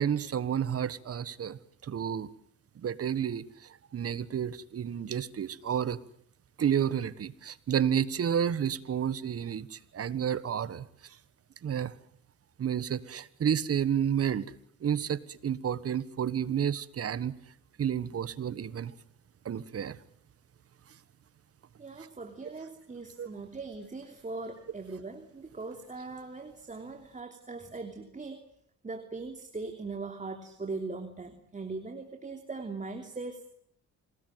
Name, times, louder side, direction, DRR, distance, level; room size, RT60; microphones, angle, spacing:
voice 1, 0.0-2.3 2.8-3.4 3.9-6.0 6.6-10.8 11.6-11.9 12.6-14.5 14.8-17.3 17.8-18.9 19.4-20.0 23.2-23.3, right 8 dB, 50° right, 17 dB, 1.5 m, -30 dB
voice 2, 21.8-28.4 28.8-33.5, right 3 dB, 25° right, 5 dB, 3.1 m, -40 dB
27.0 x 19.5 x 9.3 m, 0.69 s
cardioid pair, 90°, 30 cm